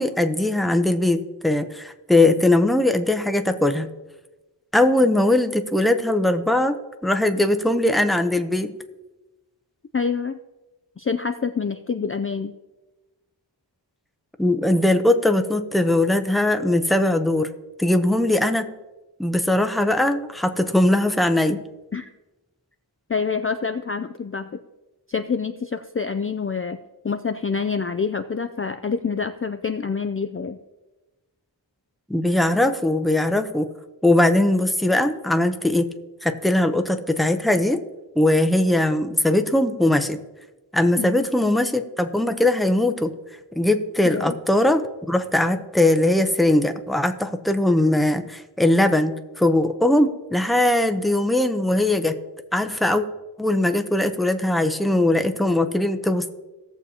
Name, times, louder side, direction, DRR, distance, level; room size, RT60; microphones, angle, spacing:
voice 1, 0.0-3.9 4.7-8.7 14.4-17.5 17.8-18.7 19.2-21.6 32.1-33.7 34.0-35.9 36.2-37.8 38.2-40.2 40.7-43.1 43.5-52.2 52.5-53.0 53.4-56.3, left 1 dB, ahead, 7 dB, 0.7 m, -20 dB
voice 2, 9.9-10.4 11.0-12.5 21.9-22.1 23.1-24.5 25.1-26.8 27.0-30.6 40.9-41.3 44.0-44.4, left 5 dB, 30° left, 8 dB, 0.4 m, -26 dB
17.5 x 6.9 x 2.8 m, 1.1 s
wide cardioid pair, 50°, 43 cm